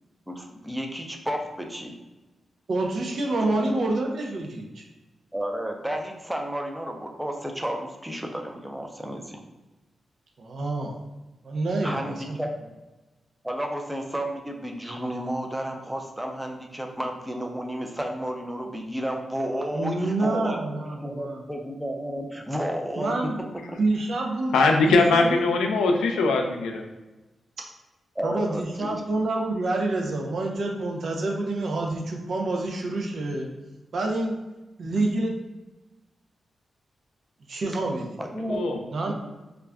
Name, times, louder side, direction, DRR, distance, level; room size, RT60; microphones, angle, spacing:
voice 1, 0.3-1.9 3.4-3.7 5.3-9.4 11.8-12.5 13.4-23.2 23.7-23.8 28.2-29.0 38.2-38.8 39.1-39.2, equal, 10° right, 2 dB, 0.6 m, -32 dB
voice 2, 2.7-4.8 10.4-11.0 11.4-12.4 19.7-21.4 23.0-23.4 23.8-24.5 24.9-25.5 28.2-33.5 33.9-34.3 34.8-35.3 37.5-38.2 38.9-39.1, right 2 dB, 70° right, 1 dB, 0.5 m, -27 dB
voice 3, 24.5-26.8 38.5-38.8, left 3 dB, 90° left, 3 dB, 0.4 m, -21 dB
2.4 x 2.2 x 3.4 m, 1.1 s
supercardioid pair, 50°, 0 cm